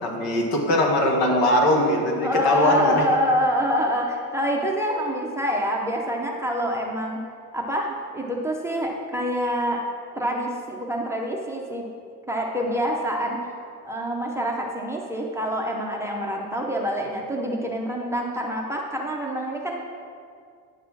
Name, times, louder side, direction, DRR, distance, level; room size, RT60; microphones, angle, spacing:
voice 1, 0.0-3.0, left 1 dB, 75° left, 1 dB, 1.8 m, -21 dB
voice 2, 2.2-7.2 7.5-9.8 10.1-11.8 12.3-13.4 13.8-19.9, equal, 5° right, -2 dB, 0.6 m, -26 dB
10.0 x 4.2 x 7.4 m, 2.2 s
cardioid pair, 165°, 38 cm